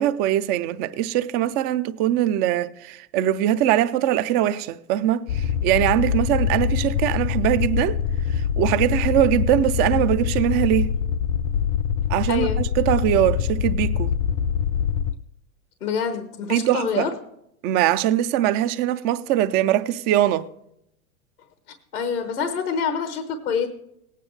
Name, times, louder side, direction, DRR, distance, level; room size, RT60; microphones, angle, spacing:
voice 1, 0.0-8.0 8.3-10.9 12.1-14.1 16.4-17.1 17.6-20.5, right 12 dB, 25° right, 0.3 m, -22 dB
sound 1, 5.3-15.1, left 8 dB, 60° left, 0.7 m, -24 dB
voice 2, 12.3-12.6 15.8-17.1 21.9-23.7, left 6 dB, 85° left, 1.3 m, -26 dB
18.5 x 9.0 x 3.2 m
hypercardioid pair, 105°, 44 cm